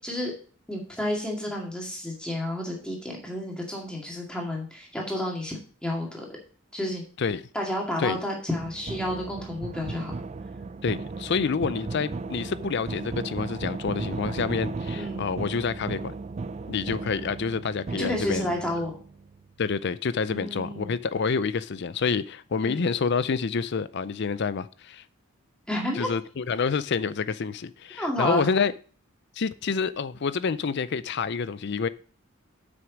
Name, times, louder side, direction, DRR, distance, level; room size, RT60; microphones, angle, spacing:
voice 1, 0.7-5.5 5.8-6.3 6.7-7.0 7.5-10.1 11.4-11.7 15.0-15.2 17.9-18.9 20.3-21.0 22.6-22.9 25.7-26.1 27.9-28.5, left 1 dB, 5° left, 2.1 m, -31 dB
voice 2, 7.2-7.5 8.0-8.2 10.8-16.1 16.7-18.5 19.6-25.0 26.0-28.7 29.4-31.9, left 5 dB, 50° left, 0.4 m, -28 dB
sound 1, 8.6-19.5, right 3 dB, 30° right, 0.3 m, -36 dB
7.9 x 6.1 x 5.0 m
head